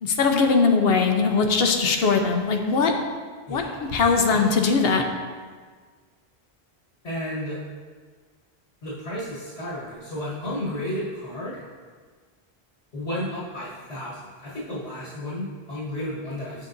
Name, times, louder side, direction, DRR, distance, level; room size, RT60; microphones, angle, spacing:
voice 1, 0.0-2.9 3.5-3.6 3.9-5.0, left 4 dB, 70° left, 3 dB, 0.9 m, -20 dB
voice 2, 3.5-3.9 4.3-4.5 7.0-7.6 8.8-11.6 12.9-16.6, left 1 dB, 90° left, -8 dB, 1.7 m, -32 dB
7.2 x 6.9 x 2.6 m, 1.5 s
omnidirectional pair, 1.1 m